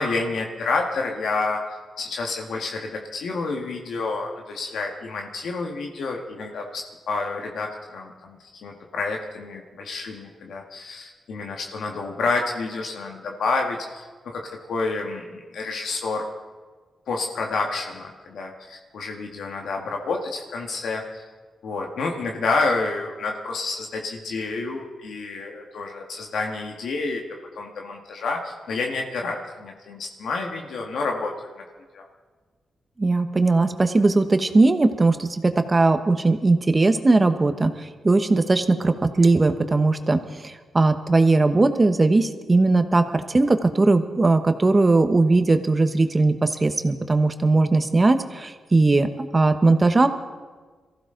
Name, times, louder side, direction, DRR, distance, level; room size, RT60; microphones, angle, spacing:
voice 1, 0.0-1.6 2.0-16.3 17.1-21.3 21.6-27.2 27.6-31.3 31.9-32.0, left 3 dB, 80° left, 1 dB, 1.7 m, -29 dB
voice 2, 33.0-50.1, right 3 dB, 30° right, 8 dB, 1.2 m, -19 dB
22.5 x 15.0 x 3.9 m, 1.4 s
cardioid pair, 90°, 0 cm